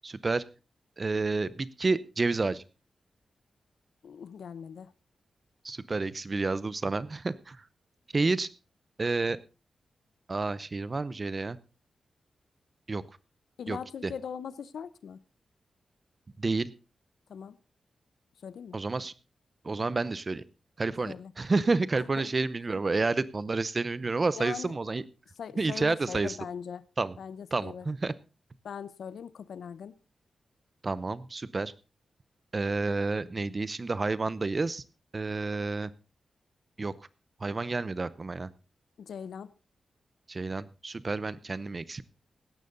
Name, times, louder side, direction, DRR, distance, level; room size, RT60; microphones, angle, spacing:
voice 1, 0.0-0.4 1.0-2.6 5.6-7.6 8.1-8.5 9.0-9.4 10.3-11.6 12.9-13.0 13.7-14.1 16.4-16.7 18.7-19.1 19.6-20.4 20.8-25.0 25.6-26.4 27.0-27.2 27.5-28.1 30.8-31.7 32.5-34.8 35.1-35.9 36.8-36.9 37.4-38.5 40.3-42.0, right 3 dB, 30° right, 18 dB, 0.7 m, -30 dB
voice 2, 4.0-4.9 13.6-15.2 17.3-17.6 18.4-18.8 21.1-21.3 22.2-22.3 24.3-24.7 25.4-26.8 27.2-27.9 28.6-29.9 39.0-39.5, left 7 dB, 85° left, 17 dB, 0.8 m, -40 dB
16.5 x 12.0 x 3.9 m, 0.31 s
wide cardioid pair, 165°, 0 cm